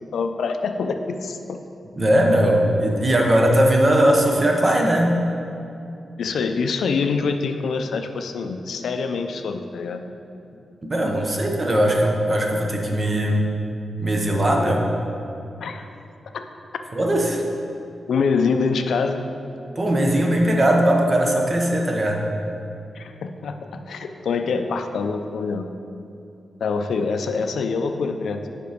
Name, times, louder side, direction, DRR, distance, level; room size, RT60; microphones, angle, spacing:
voice 1, 0.0-1.6 6.2-10.0 15.6-15.9 16.3-16.4 18.1-19.2 22.9-25.7 26.6-28.4, left 4 dB, 80° left, 6 dB, 0.4 m, -25 dB
voice 2, 1.9-5.2 10.8-13.5 14.0-14.9 16.9-17.4 19.8-22.3, right 1 dB, 30° right, 1 dB, 0.9 m, -19 dB
6.8 x 5.2 x 5.0 m, 2.7 s
wide cardioid pair, 105°, 0 cm